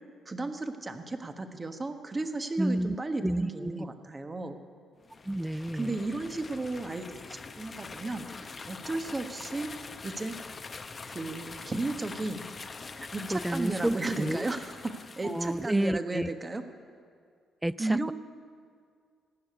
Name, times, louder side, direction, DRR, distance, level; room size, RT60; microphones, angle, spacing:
voice 1, 0.2-4.6 5.7-9.7 10.0-10.3 11.0-12.4 13.1-14.8 15.2-16.6 17.8-18.1, right 2 dB, 30° right, 7 dB, 1.3 m, -34 dB
voice 2, 2.6-3.0 3.2-3.9 5.2-6.0 13.0-14.5 15.2-16.3 17.6-18.1, right 1 dB, 10° right, 20 dB, 0.3 m, -31 dB
sound 1, 5.0-15.8, left 4 dB, 40° left, 0.8 m, -44 dB
16.0 x 6.6 x 9.6 m, 2.1 s
hypercardioid pair, 50°, 0 cm